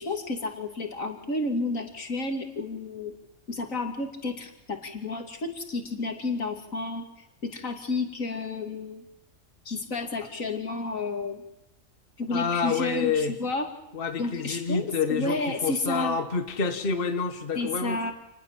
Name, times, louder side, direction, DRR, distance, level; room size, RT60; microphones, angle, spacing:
voice 1, 0.0-3.1 3.5-7.0 7.4-9.0 9.6-11.4 12.2-13.7 14.2-16.2 17.5-18.1, left 3 dB, 75° left, 5 dB, 3.0 m, -31 dB
voice 2, 12.3-13.3 13.9-18.1, left 5 dB, 45° left, 7 dB, 1.5 m, -28 dB
28.5 x 20.5 x 7.5 m, 0.90 s
omnidirectional pair, 1.4 m